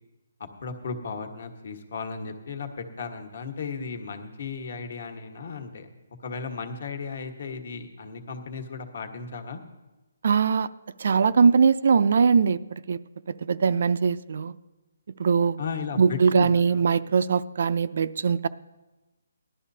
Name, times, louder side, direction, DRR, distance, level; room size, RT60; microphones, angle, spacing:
voice 1, 0.4-5.9 6.2-9.6 15.6-16.9, left 5 dB, 50° left, 6 dB, 1.4 m, -35 dB
voice 2, 10.2-10.7 11.0-13.0 13.3-14.5 15.2-15.6 16.0-18.5, right 5 dB, 50° right, 14 dB, 0.4 m, -21 dB
18.5 x 12.0 x 2.8 m, 1.1 s
hypercardioid pair, 170°, 0 cm